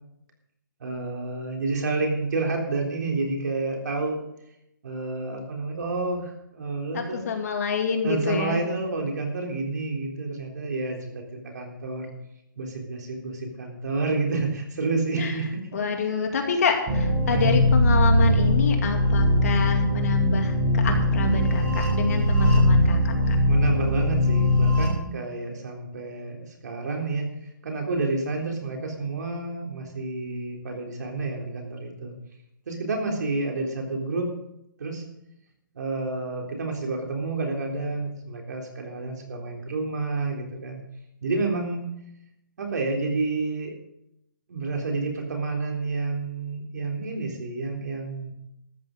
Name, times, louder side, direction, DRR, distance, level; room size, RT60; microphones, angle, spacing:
voice 1, 0.8-4.2 4.8-7.2 8.0-11.2 11.5-12.1 12.6-15.8 17.3-17.7 23.5-27.3 27.6-32.1 32.7-34.3 34.8-35.0 35.7-40.8 41.2-41.9 42.6-43.7 44.5-48.3, right 3 dB, 60° right, 1 dB, 3.7 m, -29 dB
voice 2, 6.9-8.6 15.2-15.3 15.7-23.4, left 5 dB, 50° left, 3 dB, 2.4 m, -27 dB
sound 1, 16.9-24.9, left 1 dB, 25° right, 5.0 m, -21 dB
13.5 x 9.4 x 5.4 m, 0.81 s
hypercardioid pair, 165°, 11 cm